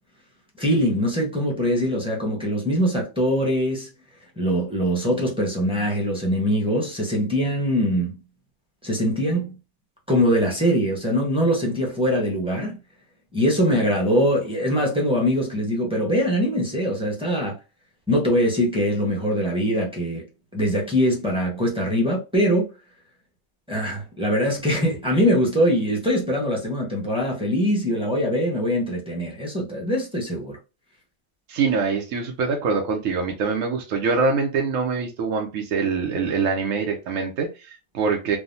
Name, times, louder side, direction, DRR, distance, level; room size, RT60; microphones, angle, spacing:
voice 1, 0.6-3.9 4.4-8.1 8.8-9.5 10.1-12.8 13.3-17.6 18.1-20.2 20.5-22.7 23.7-30.6, equal, 5° right, 0.7 m, -22 dB
voice 2, 31.5-38.4, right 4 dB, 80° right, 1.1 m, -24 dB
3.4 x 2.0 x 2.6 m
omnidirectional pair, 1.3 m